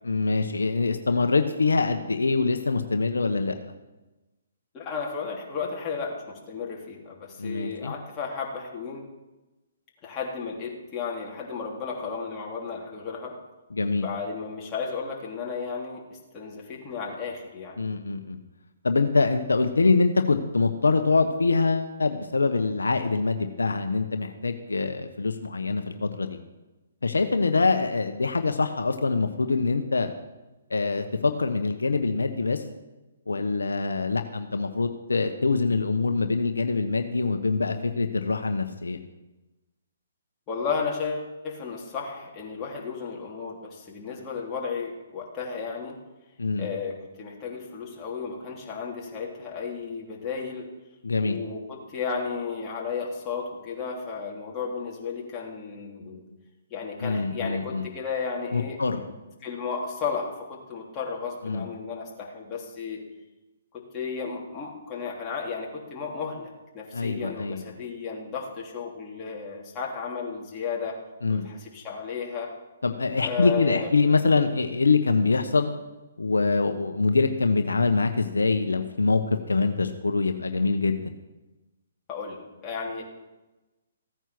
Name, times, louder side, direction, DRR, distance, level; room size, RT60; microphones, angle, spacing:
voice 1, 0.0-3.6 7.4-7.9 13.7-14.1 17.8-18.4 18.8-26.4 27.0-30.1 30.7-32.6 33.3-39.0 46.4-46.7 51.0-51.4 57.0-57.9 58.5-59.0 61.4-61.6 66.9-67.7 71.2-71.5 72.8-75.7 76.2-79.2 79.5-81.0, left 4 dB, 85° left, 7 dB, 1.1 m, -24 dB
voice 2, 4.7-9.1 10.0-13.3 14.0-17.8 40.5-46.0 46.6-50.7 51.2-56.2 56.7-58.8 59.1-63.0 63.7-71.0 71.3-72.5 73.2-73.9 82.1-83.0, left 5 dB, 25° left, -3 dB, 3.2 m, -34 dB
15.5 x 9.2 x 6.1 m, 1.1 s
hypercardioid pair, 140°, 0 cm